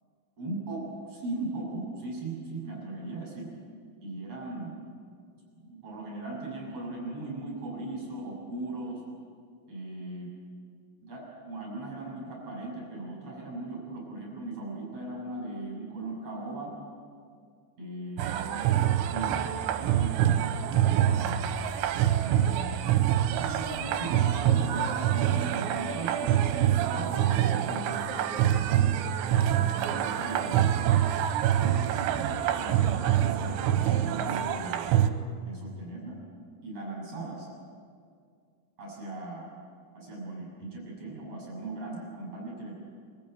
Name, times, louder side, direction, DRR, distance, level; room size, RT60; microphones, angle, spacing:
voice 1, 0.4-3.5 4.0-4.8 5.6-9.0 9.7-10.3 11.0-16.7 17.8-18.7 19.0-19.4 19.7-20.4 20.7-21.6 22.2-22.8 23.3-28.0 28.3-30.9 31.6-35.0 35.4-36.2 36.6-37.5 38.8-39.5 39.9-42.7, right 2 dB, 35° right, -2 dB, 7.5 m, -38 dB
sound 1, 18.2-35.1, right 11 dB, 80° right, 3.1 m, -26 dB
24.5 x 14.0 x 9.2 m, 2.2 s
omnidirectional pair, 5.4 m